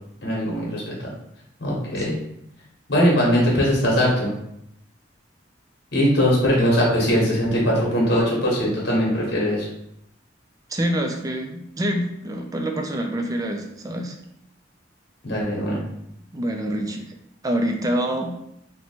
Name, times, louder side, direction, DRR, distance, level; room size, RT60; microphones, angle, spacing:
voice 1, 0.2-1.1 1.6-2.1 2.9-4.3 5.9-9.7 15.2-15.8, equal, 60° left, -4 dB, 1.1 m, -20 dB
voice 2, 10.7-14.2 16.3-17.2 17.4-18.3, right 1 dB, 20° right, 4 dB, 0.4 m, -26 dB
2.9 x 2.2 x 4.1 m, 0.76 s
head